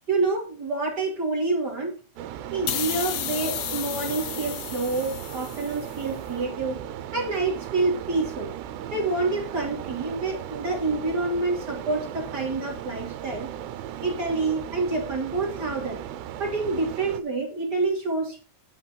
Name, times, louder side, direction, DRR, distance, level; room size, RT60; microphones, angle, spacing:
voice 1, 0.1-2.0 2.5-6.8 7.1-8.5 8.9-13.5 14.0-16.0 16.4-18.4, right 3 dB, 35° right, 2.0 m, -27 dB
sound 1, 2.2-17.2, right 11 dB, 85° right, 2.8 m, -37 dB
sound 2, 2.7-6.1, left 12 dB, 75° left, 2.1 m, -33 dB
11.5 x 4.1 x 5.8 m
omnidirectional pair, 4.8 m